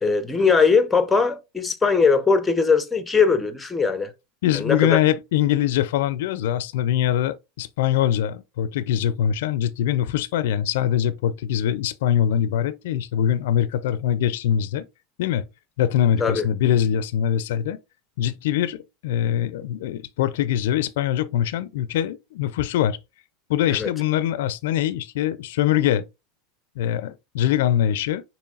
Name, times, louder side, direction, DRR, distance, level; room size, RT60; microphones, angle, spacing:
voice 1, 0.0-4.1 4.5-5.0 16.2-16.5 23.7-23.9, left 5 dB, 10° left, 0.6 m, -20 dB
voice 2, 4.4-14.8 15.2-15.4 15.8-17.8 18.2-23.0 23.5-26.1 26.8-28.2, left 10 dB, 80° left, 0.4 m, -23 dB
6.9 x 3.0 x 2.4 m
supercardioid pair, 135°, 0 cm